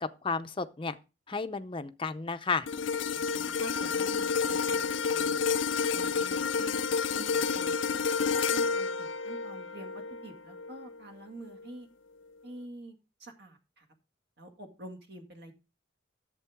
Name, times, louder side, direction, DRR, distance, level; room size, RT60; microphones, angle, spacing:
voice 1, 0.0-1.0 1.3-2.7, left 4 dB, 25° left, 0.6 m, -32 dB
sound 1, 2.7-11.0 11.5-11.7, left 5 dB, 75° left, 0.6 m, -30 dB
voice 2, 3.1-5.4 5.9-6.7 7.1-8.0 8.5-11.9 12.4-13.9 14.4-15.5, right 1 dB, 55° right, 2.0 m, -48 dB
11.0 x 7.7 x 3.5 m
head